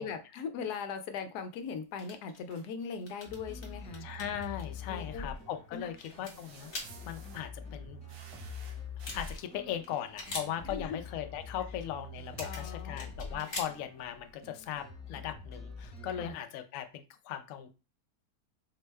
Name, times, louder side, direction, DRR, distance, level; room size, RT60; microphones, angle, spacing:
voice 1, 0.0-4.1 4.9-5.3 5.7-5.9 10.6-11.0 12.4-13.1 16.1-16.4, left 6 dB, 85° left, 7 dB, 1.1 m, -39 dB
sound 1, 2.0-2.5 2.8-4.6 5.3-5.4 5.7-7.1 8.7-8.8 9.0-9.5 9.8-10.7 12.3-14.0, left 2 dB, 50° left, 1.2 m, -43 dB
sound 2, 2.4-2.7 4.9-5.0 6.1-7.5 8.1-9.4, right 5 dB, 85° right, 1.2 m, -54 dB
sound 3, 3.3-16.3, left 3 dB, 5° left, 0.9 m, -45 dB
voice 2, 4.0-8.0 9.1-17.7, left 10 dB, 70° left, 8 dB, 0.8 m, -39 dB
4.3 x 2.1 x 3.3 m, 0.30 s
omnidirectional pair, 1.7 m